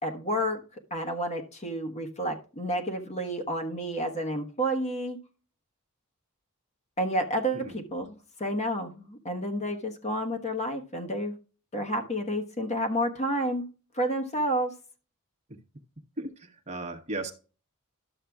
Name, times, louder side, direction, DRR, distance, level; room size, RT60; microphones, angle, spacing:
voice 1, 0.0-0.6 0.9-5.2 7.0-11.3 11.7-13.7 13.9-14.7, equal, 30° left, 1.2 m, -30 dB
voice 2, 16.2-17.3, right 2 dB, 30° right, 1.0 m, -36 dB
12.0 x 7.4 x 2.3 m
head